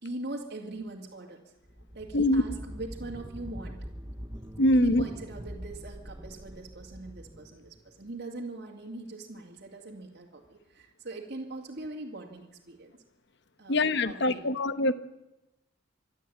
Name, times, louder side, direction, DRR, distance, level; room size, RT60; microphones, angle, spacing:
voice 1, 0.0-1.4 1.9-3.9 4.7-12.9 13.6-13.8 14.0-14.5, right 2 dB, 55° right, -1 dB, 2.3 m, -41 dB
sound 1, 1.6-8.1, equal, 15° right, 0.9 m, -43 dB
voice 2, 4.6-5.0 13.7-14.9, left 1 dB, 55° left, 12 dB, 1.1 m, -24 dB
25.0 x 12.0 x 8.7 m, 0.96 s
head